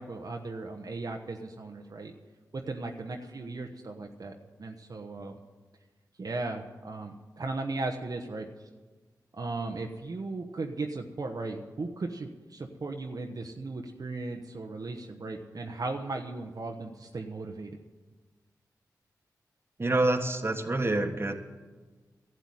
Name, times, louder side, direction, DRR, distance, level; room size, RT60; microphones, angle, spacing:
voice 1, 0.0-2.1 2.5-5.4 6.2-8.5 9.3-17.7, right 3 dB, 55° right, 2 dB, 1.0 m, -37 dB
voice 2, 19.8-21.4, right 2 dB, 35° right, 6 dB, 1.4 m, -27 dB
12.0 x 8.0 x 9.8 m, 1.3 s
cardioid pair, 45°, 7 cm